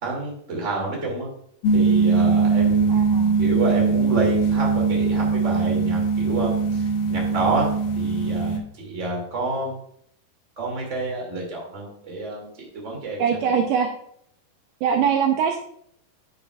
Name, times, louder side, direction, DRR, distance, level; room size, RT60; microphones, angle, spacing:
voice 1, 0.0-1.3 1.7-3.1 3.4-7.7 8.0-9.7 10.6-13.5, right 2 dB, 25° right, -1 dB, 2.0 m, -28 dB
sound 1, 1.6-8.6, right 4 dB, 80° left, 2.8 m, -21 dB
voice 2, 2.9-3.4 13.2-13.9 14.8-15.6, right 7 dB, 80° right, 3 dB, 2.1 m, -22 dB
9.6 x 7.9 x 2.4 m, 0.68 s
omnidirectional pair, 4.3 m